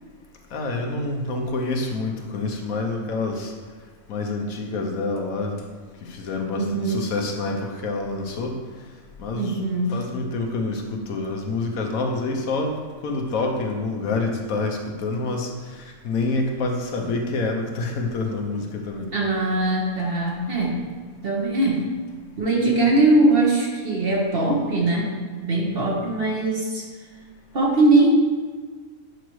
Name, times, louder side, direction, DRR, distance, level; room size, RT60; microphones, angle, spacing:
voice 1, 0.5-3.5 4.1-5.6 6.0-8.6 9.2-9.6 9.9-19.1, left 3 dB, 70° left, 2 dB, 1.2 m, -27 dB
voice 2, 6.5-7.1 9.3-10.0 19.1-20.8 21.2-21.9 22.4-26.8 27.5-28.1, right 2 dB, 45° right, -2 dB, 1.2 m, -21 dB
8.0 x 5.0 x 3.1 m, 1.5 s
omnidirectional pair, 1.5 m